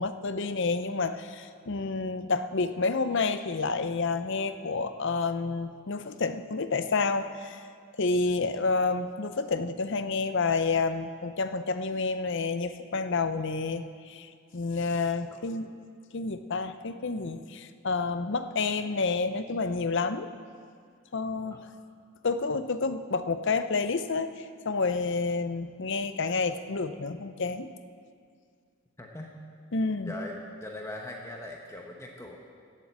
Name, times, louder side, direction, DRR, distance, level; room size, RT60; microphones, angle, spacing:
voice 1, 0.0-7.6 8.0-15.7 16.1-20.3 21.1-21.7 22.2-27.7 29.7-30.1, left 4 dB, 55° left, 10 dB, 0.6 m, -29 dB
voice 2, 29.0-29.4 30.0-32.4, left 1 dB, 10° left, 0 dB, 1.1 m, -41 dB
16.5 x 7.6 x 7.4 m, 2.1 s
head